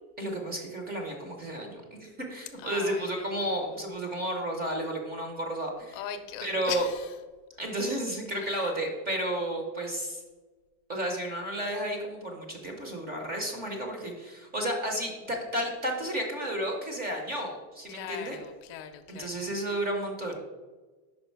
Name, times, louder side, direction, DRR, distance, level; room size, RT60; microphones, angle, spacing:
voice 1, 0.2-6.0 6.4-6.9 7.6-10.2 10.9-18.4 19.1-20.4, right 1 dB, 20° right, 2 dB, 0.7 m, -32 dB
voice 2, 2.6-4.0 5.9-7.2 8.3-8.8 17.9-19.4, left 10 dB, 60° left, 8 dB, 0.6 m, -40 dB
5.4 x 4.8 x 4.5 m, 1.3 s
cardioid pair, 170°, 47 cm